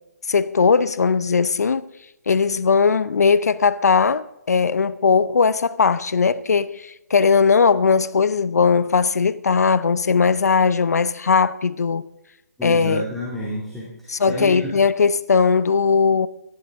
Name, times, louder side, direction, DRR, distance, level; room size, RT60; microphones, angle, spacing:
voice 1, 0.3-1.9 2.3-12.1 12.6-13.1 14.1-16.3, left 5 dB, 70° left, 0.7 m, -18 dB
voice 2, 12.6-14.7, equal, ahead, 2.3 m, -29 dB
17.5 x 12.5 x 3.6 m
figure-of-eight pair, 150°, 9 cm